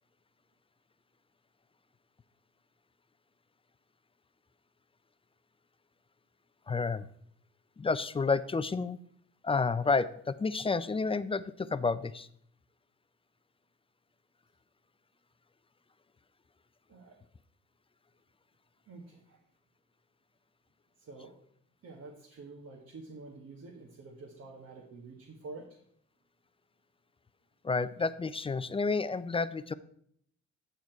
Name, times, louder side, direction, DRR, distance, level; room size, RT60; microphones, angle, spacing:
voice 1, 6.7-7.1 7.8-9.0 9.4-12.3 27.6-29.7, left 4 dB, 20° left, 15 dB, 0.4 m, -30 dB
voice 2, 18.9-19.4 21.0-21.3 21.8-25.8, right 3 dB, 55° right, 0 dB, 1.5 m, -48 dB
7.9 x 7.3 x 4.5 m, 0.66 s
cardioid pair, 90°, 30 cm